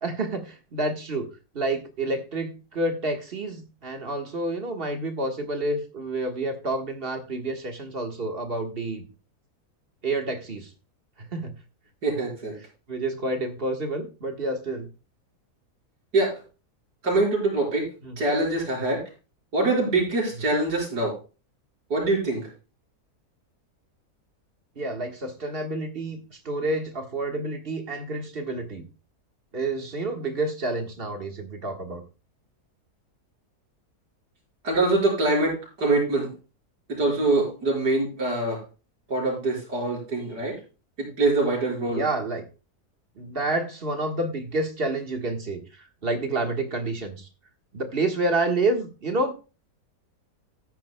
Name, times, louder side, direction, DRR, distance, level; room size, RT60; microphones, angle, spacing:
voice 1, 0.0-1.3 1.5-9.1 10.0-10.7 11.3-11.5 12.6-14.9 18.0-18.2 24.7-28.8 29.5-32.0 41.9-42.5 43.2-47.3 47.7-49.3, right 2 dB, 35° right, 5 dB, 1.6 m, -29 dB
voice 2, 12.0-12.6 16.1-16.4 17.0-17.9 18.2-19.0 19.5-21.2 21.9-22.5 34.6-36.3 36.9-38.6 39.1-40.6 41.0-42.0, right 2 dB, 85° right, -3 dB, 5.6 m, -24 dB
14.0 x 10.0 x 2.2 m, 0.33 s
omnidirectional pair, 1.7 m